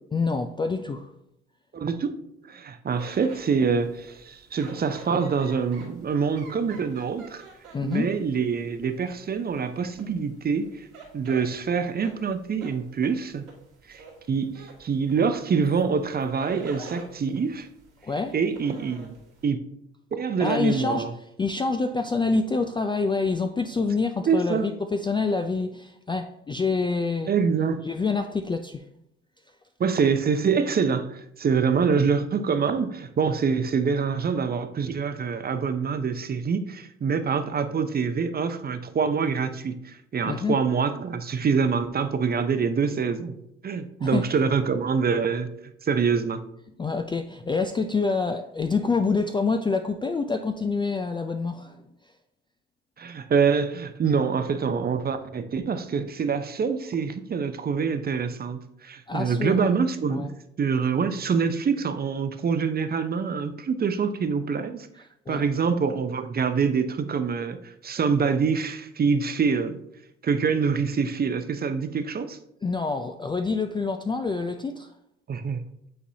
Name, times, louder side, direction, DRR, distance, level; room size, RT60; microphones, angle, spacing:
voice 1, 0.1-1.1 7.7-8.1 18.0-18.4 20.4-21.1 21.4-27.3 27.8-28.8 40.3-40.6 44.0-44.3 46.8-51.8 59.1-59.7 60.1-60.3 65.3-65.5 72.6-74.9, left 4 dB, 15° left, 0.3 m, -26 dB
voice 2, 1.7-2.1 2.4-7.4 7.8-10.9 11.1-13.5 13.9-14.0 14.3-17.7 18.3-19.1 19.4-19.7 20.1-21.1 24.3-24.7 27.3-27.9 29.8-43.3 43.6-45.5 45.8-46.4 53.0-60.3 60.6-64.9 65.3-69.8 70.2-72.4 75.3-75.6, right 5 dB, 30° right, 0.6 m, -25 dB
sound 1, 2.9-19.4, right 4 dB, 75° right, 2.0 m, -48 dB
8.7 x 4.0 x 2.8 m
hypercardioid pair, 60°, 33 cm